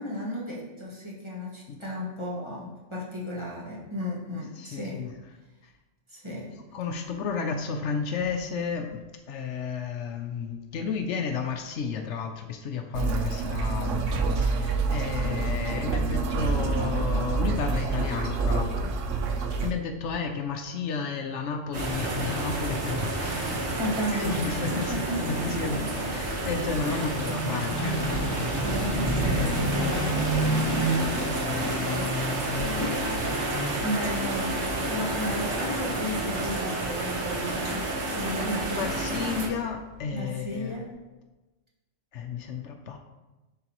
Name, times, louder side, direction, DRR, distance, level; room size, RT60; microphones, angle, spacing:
voice 1, 0.0-5.1 6.1-6.6 23.5-26.2 26.9-27.6 28.2-32.2 32.8-33.6 33.8-38.9 40.1-40.9, left 1 dB, 25° right, -5 dB, 1.4 m, -35 dB
voice 2, 4.6-5.1 6.7-9.0 9.3-18.9 19.6-23.7 24.1-27.9 38.7-40.8 42.1-43.0, left 5 dB, 70° left, 5 dB, 0.9 m, -32 dB
sound 1, 12.9-19.7, right 4 dB, 80° right, 1.0 m, -27 dB
sound 2, 21.7-39.5, right 2 dB, 65° right, 1.3 m, -30 dB
sound 3, 26.1-40.1, equal, 25° left, 0.4 m, -33 dB
10.5 x 3.8 x 2.9 m, 1.1 s
omnidirectional pair, 1.3 m